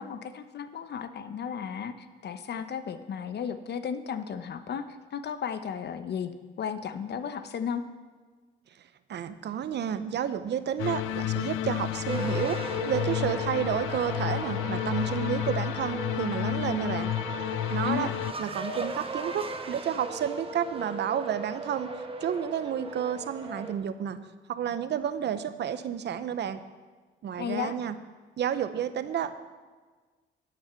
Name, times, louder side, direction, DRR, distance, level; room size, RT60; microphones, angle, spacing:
voice 1, 0.0-6.3 6.6-7.8 17.8-18.1 27.4-27.8, left 7 dB, 60° left, 10 dB, 1.0 m, -34 dB
voice 2, 9.1-17.1 17.7-18.1 18.4-21.9 22.2-24.2 24.5-26.6 27.2-28.0 28.4-29.4, right 9 dB, 60° right, 12 dB, 0.8 m, -31 dB
sound 1, 10.8-18.3, left 13 dB, 85° left, 0.4 m, -31 dB
sound 2, 12.1-23.7, right 3 dB, 30° right, 1.4 m, -37 dB
13.0 x 8.8 x 5.8 m, 1.4 s
cardioid pair, 90°, 20 cm